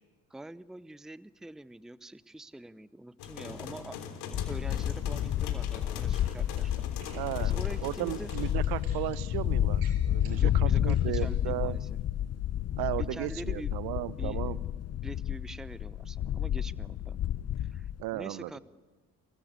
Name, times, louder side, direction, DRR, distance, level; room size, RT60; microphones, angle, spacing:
voice 1, 0.3-4.0 4.2-6.9 7.4-8.3 10.3-11.9 12.9-13.7 14.2-14.4 15.0-17.2 17.6-18.6, right 1 dB, ahead, 18 dB, 0.7 m, -45 dB
sound 1, 3.2-8.5, left 7 dB, 65° left, 3.6 m, -42 dB
sound 2, 4.3-18.0, left 11 dB, 35° left, 0.7 m, -30 dB
sound 3, 6.0-6.7 6.9-7.3 7.6-7.8 8.2-9.2 9.7-10.5 10.8-11.3, right 5 dB, 80° right, 7.4 m, -53 dB
voice 2, 7.1-11.8 12.8-14.6 18.0-18.6, right 16 dB, 60° right, 18 dB, 1.1 m, -35 dB
27.5 x 22.0 x 8.3 m, 1.3 s
figure-of-eight pair, 55°, 43 cm